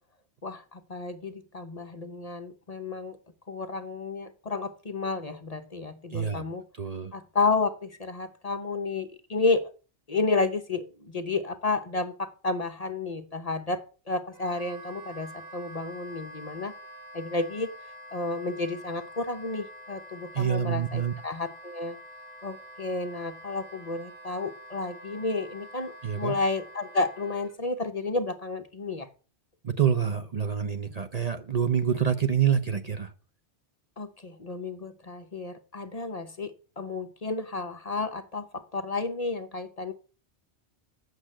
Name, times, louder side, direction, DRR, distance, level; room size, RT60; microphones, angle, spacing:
voice 1, 0.4-3.2 3.5-6.6 7.1-9.7 10.1-16.7 17.1-17.7 18.1-22.0 22.4-29.1 34.0-39.9, left 3 dB, 35° left, 8 dB, 0.9 m, -31 dB
voice 2, 6.1-6.4 6.8-7.1 20.3-21.1 26.0-26.3 29.6-33.1, right 8 dB, 40° right, 9 dB, 0.7 m, -26 dB
Wind instrument woodwind instrument, 14.3-27.5, equal, 85° right, 3.8 m, -47 dB
8.5 x 6.5 x 7.4 m, 0.37 s
omnidirectional pair, 1.2 m